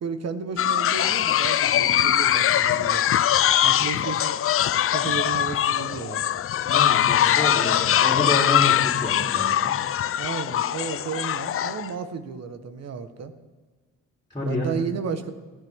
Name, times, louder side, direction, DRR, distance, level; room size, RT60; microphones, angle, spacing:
voice 1, 0.0-3.1 3.6-4.4 4.9-6.4 10.2-13.3 14.4-15.3, right 6 dB, 55° right, 10 dB, 1.4 m, -33 dB
sound 1, 0.6-11.9, left 11 dB, 45° left, 0.5 m, -22 dB
voice 2, 6.6-9.7 14.3-14.7, left 2 dB, 15° left, -8 dB, 3.9 m, -28 dB
20.5 x 15.5 x 3.7 m, 1.4 s
cardioid pair, 90°, 30 cm